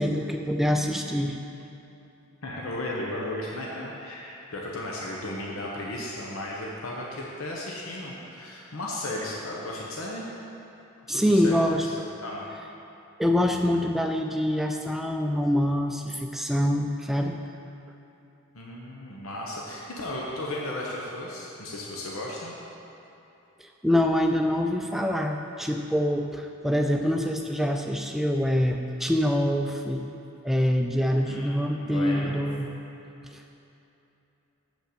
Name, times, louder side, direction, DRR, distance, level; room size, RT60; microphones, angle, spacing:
voice 1, 0.0-1.4 11.1-11.8 13.2-17.4 23.6-30.1 30.4-32.7 33.3-33.5, equal, ahead, 3 dB, 0.3 m, -25 dB
voice 2, 2.4-10.3 11.1-12.5 18.5-22.5 31.2-32.4, left 1 dB, 75° left, -3 dB, 1.0 m, -35 dB
7.7 x 5.2 x 6.8 m, 2.9 s
head